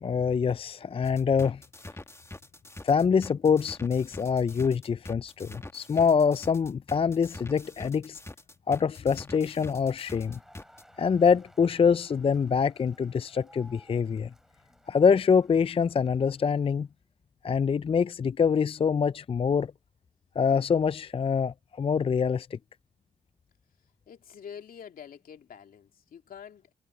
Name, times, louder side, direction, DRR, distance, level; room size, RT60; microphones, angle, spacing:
voice 1, 0.0-1.6 2.8-8.2 8.7-10.4 11.0-14.3 14.9-16.9 17.4-19.7 20.4-22.6, left 6 dB, 40° left, 0.4 m, -25 dB
sound 1, 1.1-10.8, left 2 dB, 20° left, 1.7 m, -44 dB
Crowd, 9.8-16.8, equal, 5° right, 5.0 m, -59 dB
voice 2, 24.1-26.7, left 8 dB, 80° left, 2.5 m, -46 dB
supercardioid pair, 45°, 15 cm